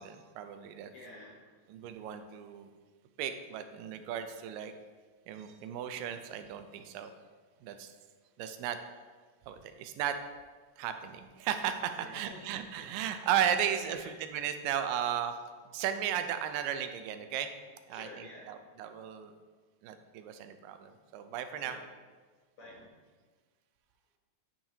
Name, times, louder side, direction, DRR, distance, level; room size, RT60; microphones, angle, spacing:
voice 1, 0.0-0.9 1.7-2.7 3.2-4.7 5.3-7.1 7.6-7.9 8.4-8.8 9.5-10.2 10.8-15.3 15.7-17.5 17.9-19.3 19.8-21.8, right 9 dB, 90° right, 9 dB, 2.2 m, -35 dB
voice 2, 0.9-1.5 5.8-6.1 12.0-12.9 13.9-14.1 17.9-18.6 21.6-21.8 22.6-23.0, left 1 dB, 70° left, -3 dB, 1.5 m, -51 dB
8.8 x 5.6 x 2.8 m, 1.4 s
omnidirectional pair, 3.9 m